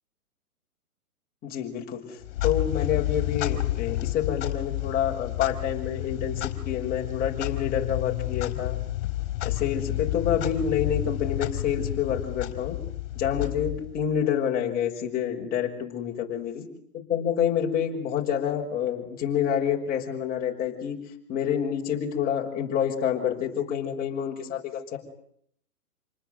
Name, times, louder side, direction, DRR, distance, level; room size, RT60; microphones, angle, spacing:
voice 1, 1.4-8.8 9.4-12.8 13.1-16.6 17.1-21.0 21.3-25.0, left 9 dB, 20° left, 0 dB, 6.0 m, -28 dB
Clock, 2.2-14.2, left 15 dB, 40° left, 4.7 m, -30 dB
29.0 x 20.0 x 9.3 m, 0.68 s
hypercardioid pair, 145°, 44 cm